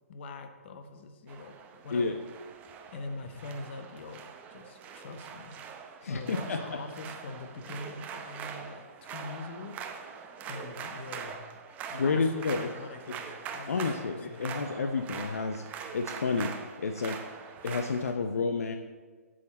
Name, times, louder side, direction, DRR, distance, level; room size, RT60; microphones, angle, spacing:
voice 1, 0.1-1.5 1.8-2.2 2.9-5.6 6.0-9.8 10.4-11.4 11.9-14.5, left 3 dB, 45° left, 7 dB, 1.0 m, -43 dB
sound 1, 1.3-18.1, right 6 dB, 20° right, 0.6 m, -43 dB
voice 2, 6.0-6.6 11.9-12.7 13.7-15.6 15.9-16.5 16.8-17.2 17.6-18.7, left 4 dB, 70° left, 6 dB, 0.6 m, -30 dB
8.3 x 7.6 x 4.1 m, 1.4 s
hypercardioid pair, 135°, 8 cm